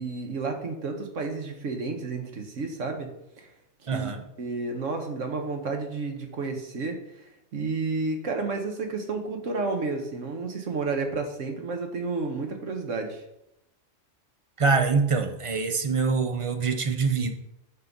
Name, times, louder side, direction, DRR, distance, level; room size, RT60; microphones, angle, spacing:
voice 1, 0.0-3.1 3.4-3.5 3.9-4.1 4.4-7.0 7.5-13.2, right 3 dB, 90° right, 4 dB, 1.4 m, -31 dB
voice 2, 3.9-4.2 14.6-17.3, right 4 dB, 40° right, 6 dB, 0.5 m, -24 dB
7.2 x 3.9 x 5.9 m, 0.83 s
omnidirectional pair, 1.3 m